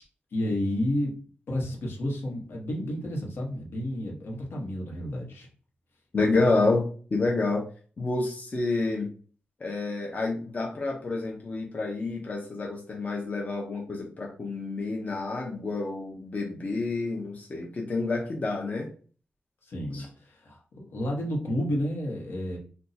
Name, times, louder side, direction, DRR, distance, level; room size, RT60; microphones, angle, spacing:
voice 1, 0.3-1.1 1.5-5.5 19.6-22.6, left 1 dB, 75° left, 0 dB, 1.1 m, -31 dB
voice 2, 6.1-7.6 8.0-9.1 9.6-18.9 19.9-20.0, left 3 dB, 40° left, -1 dB, 0.7 m, -28 dB
2.6 x 2.3 x 4.0 m, 0.41 s
wide cardioid pair, 110°, 4 cm